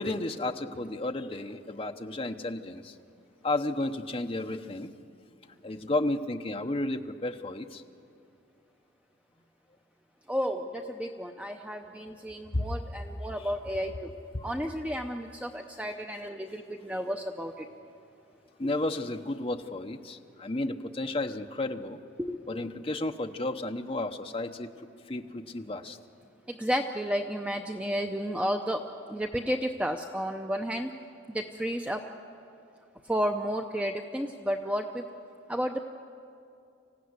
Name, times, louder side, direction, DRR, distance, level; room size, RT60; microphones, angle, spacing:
voice 1, 0.0-2.9 3.4-4.9 5.6-7.8 12.5-12.9 14.3-14.5 18.6-22.0 22.5-24.7 25.1-26.0, left 2 dB, 30° left, 5 dB, 0.8 m, -32 dB
voice 2, 10.3-14.1 14.4-17.7 22.2-22.4 26.5-30.9 31.3-32.0 33.1-35.1 35.5-35.8, equal, 5° right, 4 dB, 0.6 m, -32 dB
25.5 x 16.0 x 9.6 m, 2.5 s
head